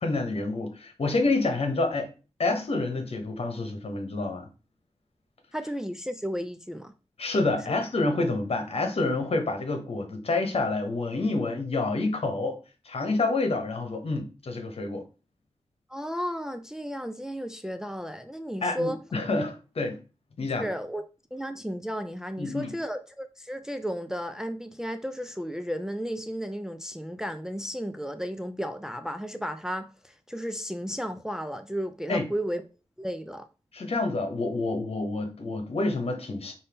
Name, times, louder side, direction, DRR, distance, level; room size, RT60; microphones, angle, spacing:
voice 1, 0.0-2.1 2.4-4.5 7.2-12.6 12.8-15.0 18.6-20.0 20.4-20.7 22.4-22.7 32.1-32.3 33.7-36.5, left 2 dB, 65° left, 1.2 m, -28 dB
voice 2, 5.5-6.9 15.9-19.0 20.6-21.0 21.3-32.6 33.0-33.5, equal, 5° right, 0.4 m, -33 dB
5.4 x 2.7 x 3.5 m
wide cardioid pair, 80°, 11 cm